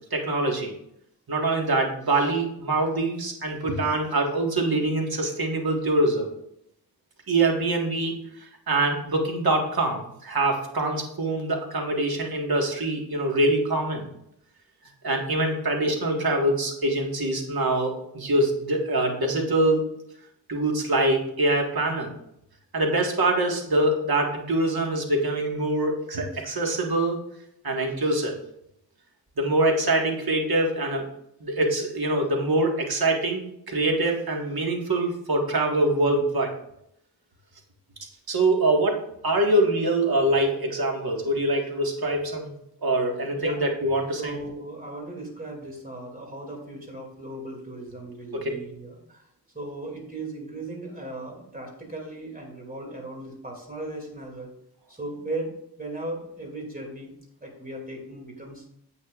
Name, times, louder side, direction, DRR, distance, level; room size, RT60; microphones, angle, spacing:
voice 1, 0.1-0.7 1.3-6.3 7.3-8.1 8.7-14.1 15.0-19.9 20.5-22.1 22.7-27.2 27.6-28.3 29.4-31.0 31.4-36.5 38.3-42.5 42.8-44.3 48.3-48.5, right 2 dB, 65° right, 1 dB, 1.7 m, -24 dB
voice 2, 44.2-49.3 49.5-54.5 54.9-57.1 57.4-58.6, right 2 dB, 20° right, 0 dB, 2.5 m, -37 dB
9.9 x 8.0 x 2.4 m, 0.74 s
wide cardioid pair, 105°, 40 cm